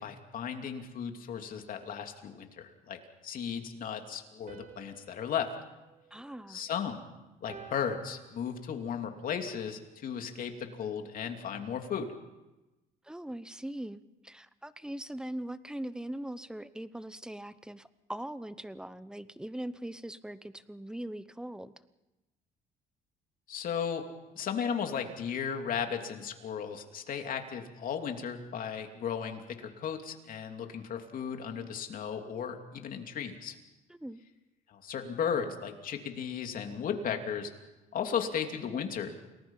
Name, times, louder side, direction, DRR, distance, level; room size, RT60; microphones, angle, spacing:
voice 1, 0.0-5.5 6.5-7.0 7.4-12.1 23.5-24.0 24.3-33.5 34.7-37.5 37.9-39.1, left 7 dB, 55° left, 4 dB, 2.9 m, -35 dB
sound 1, 4.5-6.9 7.5-9.0, right 6 dB, 50° right, 3.2 m, -53 dB
voice 2, 6.1-6.6 13.0-21.7 33.9-34.2, right 1 dB, 5° right, 14 dB, 0.9 m, -41 dB
29.5 x 19.5 x 5.7 m, 1.0 s
cardioid pair, 110°, 17 cm